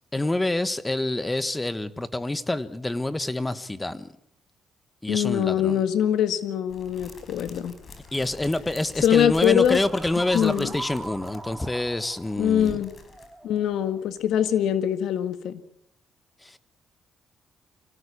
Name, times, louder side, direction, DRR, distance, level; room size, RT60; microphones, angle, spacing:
voice 1, 0.1-4.1 5.0-5.8 8.1-12.8 16.4-16.6, left 2 dB, 15° left, 13 dB, 1.5 m, -27 dB
voice 2, 5.1-7.7 9.0-9.8 10.3-10.7 12.4-12.9 13.4-15.6, left 9 dB, 80° left, 11 dB, 1.7 m, -23 dB
sound 1, 6.7-13.8 14.0-14.1 14.4-14.5, left 4 dB, 45° left, 5.1 m, -46 dB
sound 2, 8.1-8.2 9.4-14.0, right 2 dB, 10° right, 2.6 m, -41 dB
24.5 x 17.5 x 8.6 m, 0.73 s
cardioid pair, 90°, 0 cm